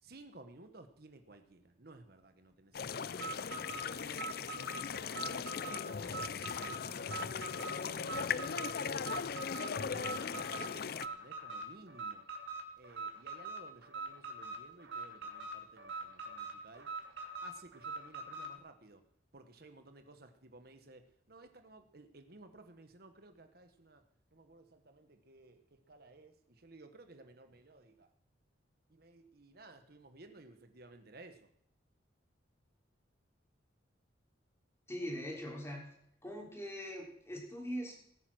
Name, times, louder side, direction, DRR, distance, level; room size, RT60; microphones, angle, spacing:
voice 1, 0.0-4.3 4.6-9.1 9.6-12.2 12.8-16.9 17.4-19.0 19.3-24.0 24.3-28.1 28.9-31.5, right 2 dB, 50° right, 7 dB, 1.2 m, -57 dB
sound 1, 2.7-11.1, left 6 dB, 50° left, 0.5 m, -39 dB
Alarm, 3.1-18.6, right 3 dB, 70° right, 2.7 m, -43 dB
voice 2, 34.9-35.8 36.2-37.9, equal, 15° left, -1 dB, 3.6 m, -41 dB
18.5 x 9.4 x 6.2 m, 0.72 s
head